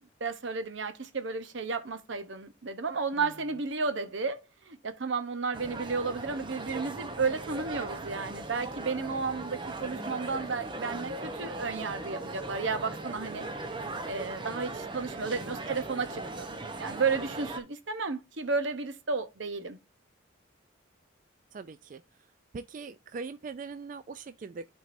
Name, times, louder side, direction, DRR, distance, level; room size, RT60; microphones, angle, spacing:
voice 1, 0.2-13.5 14.1-16.5 16.8-19.8, right 4 dB, 70° right, 0.8 m, -33 dB
sound 1, 5.5-17.6, right 2 dB, 25° right, 0.8 m, -39 dB
voice 2, 15.4-15.7 21.5-22.0 22.5-24.7, right 4 dB, 40° right, 0.3 m, -42 dB
11.5 x 4.6 x 2.6 m
head